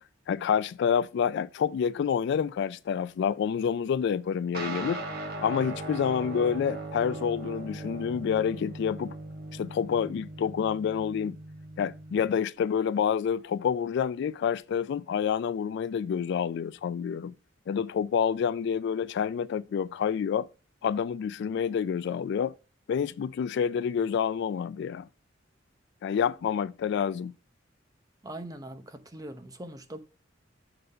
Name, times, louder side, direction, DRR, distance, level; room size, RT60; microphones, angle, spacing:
voice 1, 0.3-5.0 5.4-9.2 9.5-11.4 11.8-17.3 17.7-20.5 20.8-22.5 22.9-25.1 26.0-27.3, left 7 dB, 60° left, 0.3 m, -28 dB
sound 1, 4.5-12.3, right 2 dB, 50° right, 1.3 m, -39 dB
voice 2, 28.2-30.0, right 1 dB, 20° right, 0.7 m, -41 dB
6.8 x 4.0 x 5.4 m
head